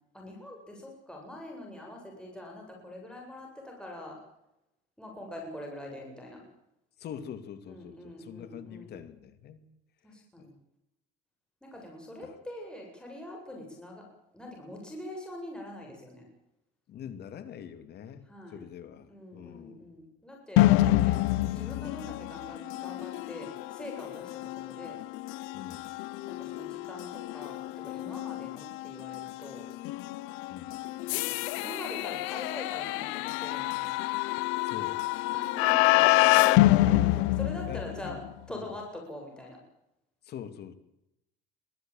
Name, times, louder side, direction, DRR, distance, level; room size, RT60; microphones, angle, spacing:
voice 1, 0.1-4.2 5.0-6.4 7.7-9.0 10.0-10.6 11.6-14.0 14.3-16.3 18.3-18.6 19.1-20.8 21.0-21.2 21.5-25.0 26.2-29.7 31.0-34.0 35.3-38.2 38.5-39.6, left 1 dB, 5° left, -1 dB, 8.0 m, -44 dB
voice 2, 7.0-9.6 10.1-10.5 12.2-12.3 16.9-20.0 25.5-25.9 30.5-30.8 34.6-35.1 37.7-38.2 38.5-38.7 40.2-40.7, left 9 dB, 55° left, 11 dB, 2.6 m, -44 dB
sound 1, 20.6-38.3, left 18 dB, 85° left, 0.7 m, -27 dB
23.0 x 15.0 x 9.0 m, 0.85 s
cardioid pair, 130°, 20 cm